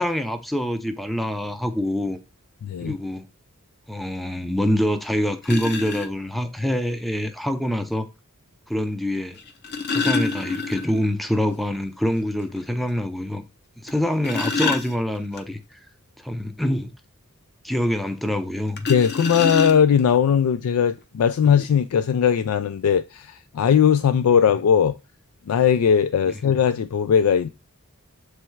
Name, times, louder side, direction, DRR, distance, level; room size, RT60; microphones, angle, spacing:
voice 1, 0.0-2.2 2.8-3.2 3.9-8.1 8.7-9.4 9.9-13.4 13.8-15.8 16.2-16.9 17.6-18.9, equal, ahead, 0.5 m, -25 dB
voice 2, 2.6-3.0 18.9-25.0 25.5-27.5, left 7 dB, 75° left, 0.4 m, -19 dB
sound 1, 4.8-4.9 5.4-6.1 7.5-7.6 9.4-11.1 11.4-11.5 12.0-12.1 12.6-12.7 13.9-15.4 18.8-20.1 21.0-21.1 21.4-21.7, left 4 dB, 50° left, 0.8 m, -27 dB
7.2 x 3.3 x 4.5 m
head